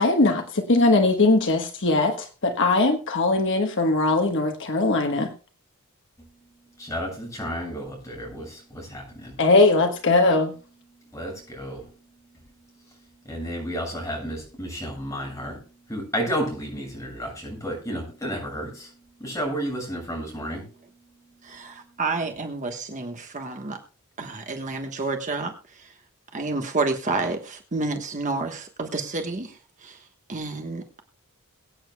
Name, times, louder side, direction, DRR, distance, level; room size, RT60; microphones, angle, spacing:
voice 1, 0.0-5.3 9.4-10.5, left 2 dB, 55° left, 1.2 m, -20 dB
voice 2, 6.8-9.4 11.1-11.9 13.2-15.6 15.9-18.9 19.2-20.7, equal, 15° left, 7.2 m, -32 dB
voice 3, 21.4-23.8 24.2-25.9 26.3-31.0, right 3 dB, 35° right, 1.2 m, -30 dB
22.5 x 8.9 x 2.3 m
head